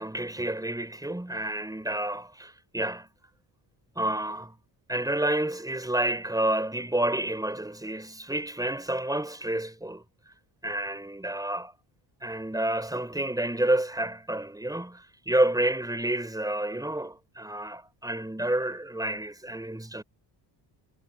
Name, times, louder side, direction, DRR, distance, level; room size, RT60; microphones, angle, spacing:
voice 1, 0.0-3.1 3.9-4.6 4.9-10.0 10.6-11.7 12.2-20.0, right 1 dB, 10° right, 6.2 m, -29 dB
cardioid pair, 100°, 46 cm